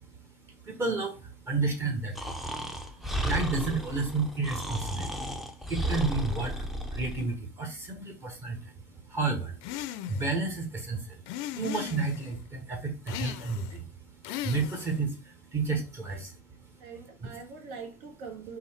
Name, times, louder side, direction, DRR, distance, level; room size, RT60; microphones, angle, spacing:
voice 1, 0.0-2.5 2.9-5.2 5.6-8.8 9.1-9.6 9.9-11.3 11.5-16.3 16.7-16.8, right 3 dB, 25° right, 1.0 m, -32 dB
Breathing, 2.1-7.3, equal, ahead, 0.5 m, -34 dB
sound 1, 9.6-10.4 11.3-12.3 13.1-13.8 14.2-15.0, left 12 dB, 60° left, 0.4 m, -37 dB
voice 2, 16.0-16.3 16.8-18.6, right 5 dB, 75° right, 1.6 m, -43 dB
3.9 x 2.8 x 4.2 m
supercardioid pair, 145°, 9 cm